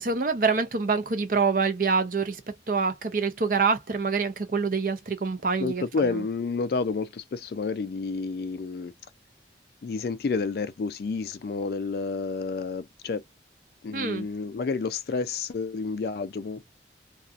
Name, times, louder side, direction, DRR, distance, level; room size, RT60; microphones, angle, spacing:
voice 1, 0.0-2.4 2.7-5.8 6.1-6.2 13.9-14.3, right 4 dB, 50° right, 0.6 m, -26 dB
voice 2, 5.6-8.9 9.8-13.2 13.8-16.6, left 4 dB, 55° left, 0.3 m, -30 dB
2.6 x 2.4 x 2.4 m
head